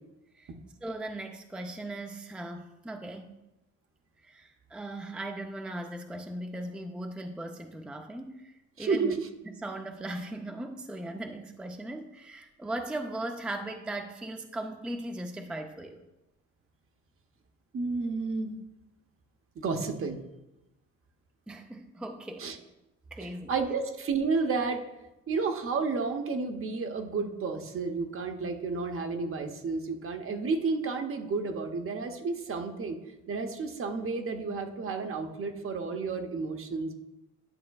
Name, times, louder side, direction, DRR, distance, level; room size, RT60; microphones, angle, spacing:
voice 1, 0.8-3.4 4.2-9.2 9.6-16.0 21.5-22.5 23.1-23.5, right 1 dB, 5° right, 4 dB, 0.5 m, -38 dB
voice 2, 8.8-9.3 17.7-18.5 19.6-20.2 22.4-22.6 23.2-24.8 25.3-33.0 33.3-36.9, right 4 dB, 45° right, 5 dB, 0.9 m, -31 dB
10.5 x 6.1 x 2.3 m, 0.96 s
cardioid pair, 90°, 30 cm